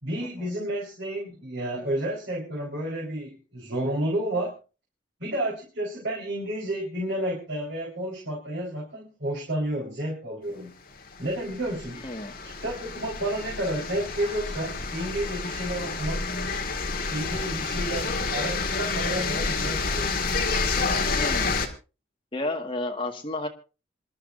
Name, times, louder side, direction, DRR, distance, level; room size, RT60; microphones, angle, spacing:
voice 1, 0.0-4.6 5.2-10.7 11.2-12.0 12.6-16.3 17.1-20.3, right 1 dB, 70° right, -4 dB, 4.2 m, -31 dB
sound 1, 11.0-21.7, left 4 dB, 45° left, 1.8 m, -29 dB
voice 2, 12.0-12.3 21.2-21.5 22.3-23.5, left 2 dB, 25° left, 2 dB, 1.7 m, -31 dB
26.5 x 11.5 x 2.6 m, 0.32 s
head